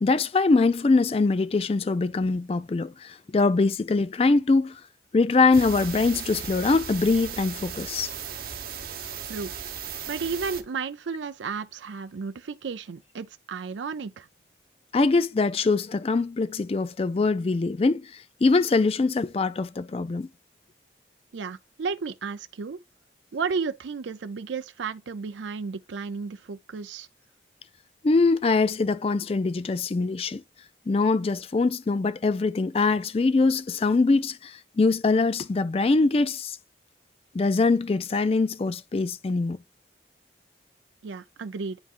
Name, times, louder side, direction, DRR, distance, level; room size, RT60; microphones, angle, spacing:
voice 1, 0.0-4.8 5.1-8.1 14.9-20.3 28.0-30.4 30.9-36.6 37.3-39.6, left 3 dB, 30° left, 0.3 m, -23 dB
sound 1, 5.5-10.6, right 7 dB, 55° right, 0.9 m, -36 dB
voice 2, 10.1-14.3 21.3-22.8 23.3-27.1 41.0-41.8, right 5 dB, 90° right, 0.5 m, -33 dB
10.5 x 3.6 x 2.5 m
head